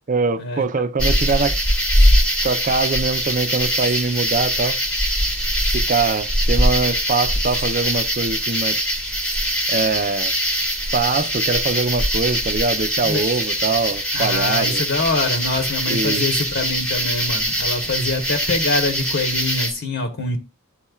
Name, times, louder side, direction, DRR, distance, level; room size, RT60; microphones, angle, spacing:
voice 1, 0.1-1.6 2.4-4.8 5.7-8.8 9.7-10.3 10.9-14.8 15.9-16.3, right 4 dB, 40° right, 0.5 m, -23 dB
sound 1, 1.0-19.7, equal, 5° left, 1.0 m, -22 dB
voice 2, 14.1-20.4, left 2 dB, 60° left, 1.1 m, -24 dB
12.0 x 4.3 x 2.3 m
head